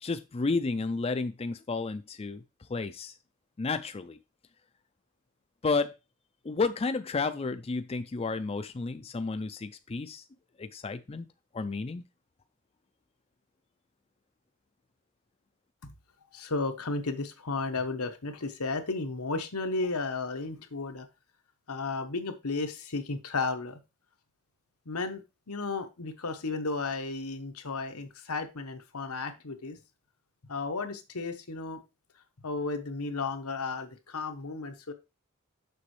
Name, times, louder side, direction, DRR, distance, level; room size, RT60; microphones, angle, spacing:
voice 1, 0.0-2.4 2.7-3.1 3.6-4.2 5.6-5.9 6.4-10.2 10.6-11.3 11.5-12.0, left 4 dB, 25° left, 10 dB, 0.4 m, -31 dB
voice 2, 16.3-21.1 21.7-23.8 24.9-29.8 30.5-31.8 32.4-34.9, left 3 dB, 90° left, 7 dB, 1.1 m, -34 dB
6.8 x 6.2 x 3.2 m, 0.26 s
head